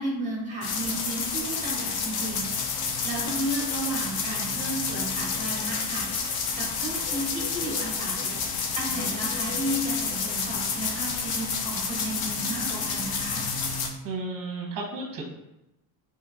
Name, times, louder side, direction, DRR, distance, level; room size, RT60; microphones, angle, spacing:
voice 1, 0.0-2.5 3.0-6.1 6.6-8.4 8.7-13.4, right 1 dB, 15° right, -4 dB, 1.2 m, -33 dB
sound 1, 0.6-13.9, left 5 dB, 55° left, 0.6 m, -29 dB
voice 2, 14.0-15.2, right 3 dB, 45° right, 1 dB, 0.9 m, -33 dB
3.0 x 2.9 x 3.6 m, 0.91 s
cardioid pair, 165°, 45 cm